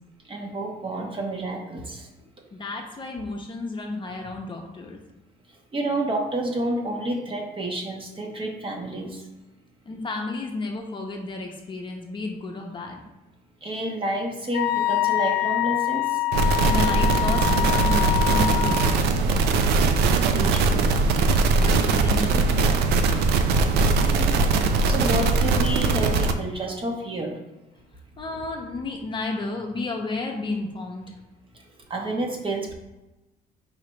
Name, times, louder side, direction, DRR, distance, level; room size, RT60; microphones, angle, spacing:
voice 1, 0.2-2.1 5.7-9.2 13.6-16.2 20.1-20.8 24.0-24.3 24.6-27.4 31.5-31.6 31.9-32.7, right 1 dB, 30° right, 1 dB, 0.9 m, -29 dB
voice 2, 2.5-5.0 9.9-13.0 16.5-18.9 21.3-22.9 28.2-31.2, left 3 dB, 30° left, 1 dB, 0.7 m, -32 dB
Wind instrument woodwind instrument, 14.5-18.9, left 16 dB, 90° left, 0.5 m, -25 dB
sound 1, 16.3-26.3, right 3 dB, 75° right, 0.4 m, -21 dB
4.9 x 3.2 x 3.1 m, 1.0 s
cardioid pair, 110°, 17 cm